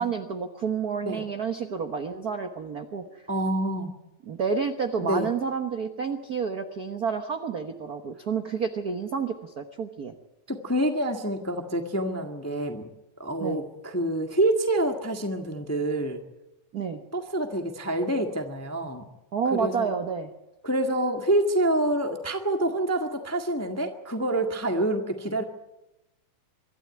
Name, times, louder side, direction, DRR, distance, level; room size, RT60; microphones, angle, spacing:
voice 1, 0.0-3.2 4.3-10.1 13.4-13.6 16.7-17.0 19.3-20.3, right 6 dB, 60° right, 7 dB, 1.0 m, -30 dB
voice 2, 3.3-3.9 5.0-5.3 10.5-12.8 13.2-16.2 17.1-19.0 19.5-19.9 20.6-25.4, right 1 dB, 10° left, 4 dB, 0.8 m, -27 dB
24.5 x 13.0 x 9.5 m, 0.95 s
omnidirectional pair, 3.4 m